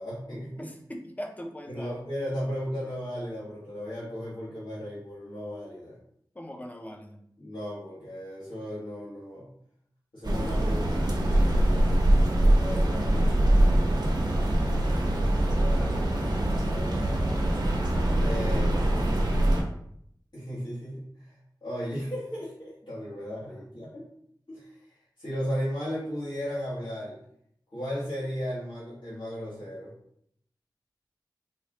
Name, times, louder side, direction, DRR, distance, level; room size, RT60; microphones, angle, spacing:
voice 1, 0.0-0.7 1.7-6.0 7.4-9.5 10.1-13.3 15.5-15.8 16.6-17.3 18.2-18.9 20.3-24.1 24.5-27.2 27.7-29.9, equal, 80° left, -10 dB, 1.4 m, -36 dB
voice 2, 0.6-2.0 6.3-7.2 15.8-16.2 23.5-23.7, equal, 20° left, 3 dB, 0.5 m, -40 dB
sound 1, 10.2-19.6, right 1 dB, 65° right, 0.7 m, -23 dB
4.4 x 2.4 x 3.0 m, 0.70 s
wide cardioid pair, 75°, 8 cm